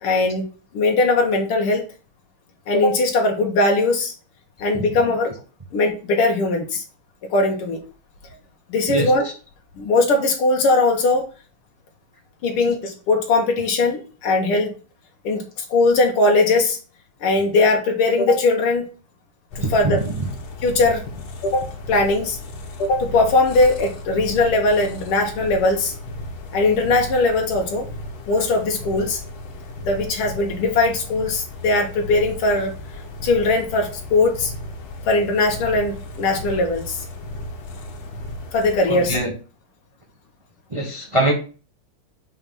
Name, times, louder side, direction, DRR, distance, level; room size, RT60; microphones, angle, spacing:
voice 1, 0.0-0.5 0.7-1.8 2.7-4.1 4.6-5.3 5.7-6.8 7.3-7.8 8.7-9.3 9.8-11.3 12.4-14.7 15.2-16.8 17.2-18.9 19.6-20.0 20.6-21.0 21.4-22.4 22.8-25.9 26.5-27.8 28.3-29.2 29.9-32.7 33.2-34.5 35.1-37.0 38.5-39.2, left 2 dB, 90° left, 2 dB, 2.0 m, -20 dB
sound 1, 19.5-39.2, left 1 dB, 65° left, 1.8 m, -35 dB
voice 2, 19.6-20.0 38.9-39.3 40.7-41.3, right 1 dB, 25° right, 1 dB, 0.7 m, -22 dB
5.7 x 3.5 x 5.6 m, 0.36 s
omnidirectional pair, 2.4 m